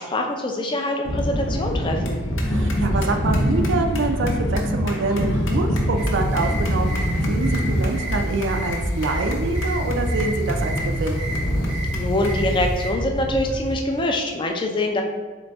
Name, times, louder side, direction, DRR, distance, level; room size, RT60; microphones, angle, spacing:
voice 1, 0.0-2.2 11.9-15.0, left 1 dB, 20° left, 3 dB, 0.3 m, -24 dB
sound 1, 1.0-13.7, equal, 65° left, 0.7 m, -27 dB
sound 2, 2.4-8.0, equal, 80° left, 1.0 m, -25 dB
voice 2, 2.5-11.2, right 3 dB, 55° right, 5 dB, 0.3 m, -26 dB
sound 3, 6.0-12.9, equal, 40° left, 1.0 m, -30 dB
3.9 x 3.2 x 3.4 m, 1.4 s
head